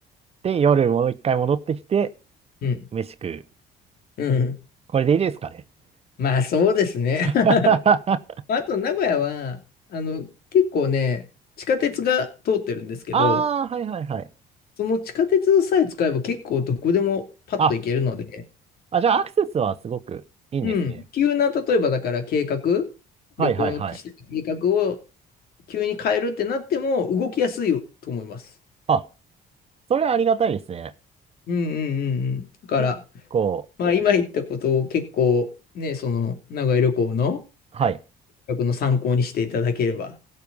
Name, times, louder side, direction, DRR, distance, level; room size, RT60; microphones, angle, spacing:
voice 1, 0.4-2.1 2.9-3.4 4.9-5.6 7.4-8.2 13.1-14.3 17.6-17.7 18.9-20.2 20.5-20.7 23.4-23.9 28.9-29.0 29.9-30.9 32.8-32.9 33.3-33.7 37.8-38.0, right 6 dB, 35° right, 0.9 m, -22 dB
voice 2, 4.2-4.5 6.2-7.7 8.5-9.6 9.9-10.3 10.5-11.2 11.7-13.4 14.8-17.2 17.5-18.4 20.6-22.9 23.4-23.8 24.3-25.0 25.7-27.8 28.1-28.4 31.5-33.0 33.8-35.5 35.7-37.4 38.5-40.1, left 6 dB, 65° left, 2.8 m, -23 dB
16.5 x 6.8 x 5.5 m
cardioid pair, 110°, 17 cm